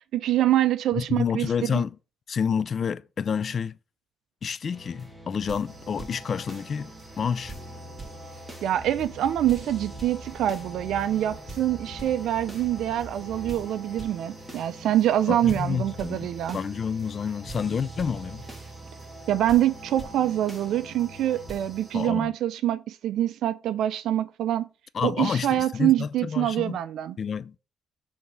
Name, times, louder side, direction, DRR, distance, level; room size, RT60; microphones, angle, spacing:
voice 1, 0.1-1.8 8.6-16.6 19.3-24.7 25.0-27.2, right 12 dB, 75° right, 0.4 m, -25 dB
voice 2, 0.9-2.0 2.3-3.8 4.4-7.5 15.3-16.3 16.5-18.5 21.9-22.3 24.9-26.8 27.2-27.6, left 6 dB, 50° left, 0.4 m, -29 dB
sound 1, 4.7-21.8, right 1 dB, 5° right, 1.8 m, -44 dB
sound 2, 5.7-22.1, right 2 dB, 25° right, 3.3 m, -48 dB
sound 3, 8.6-13.6, right 1 dB, 25° left, 1.5 m, -44 dB
7.1 x 3.5 x 6.1 m
cardioid pair, 90°, 0 cm